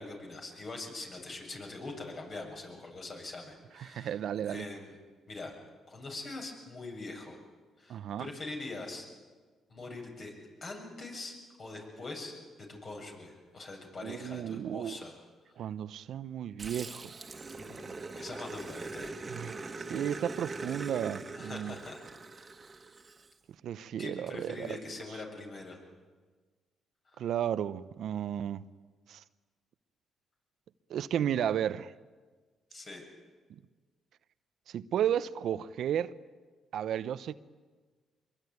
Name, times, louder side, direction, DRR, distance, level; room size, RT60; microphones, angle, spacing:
voice 1, 0.0-4.2 4.4-4.9 5.3-5.5 5.9-7.4 7.8-9.1 9.7-10.3 10.6-12.3 12.7-15.1 17.6-19.1 21.3-22.0 22.3-22.7 24.0-25.8 27.1-27.3 32.7-33.1, left 2 dB, 45° left, 7.4 m, -43 dB
voice 2, 3.8-4.7 7.9-8.3 14.0-14.9 15.6-17.1 19.3-19.5 19.9-21.8 23.6-24.8 27.2-28.6 29.1-29.2 30.9-31.9 34.7-36.1 36.7-37.3, right 10 dB, 70° right, 0.7 m, -33 dB
Growling, 16.6-23.3, right 3 dB, 30° right, 1.8 m, -42 dB
24.5 x 22.5 x 9.6 m
cardioid pair, 90°, 0 cm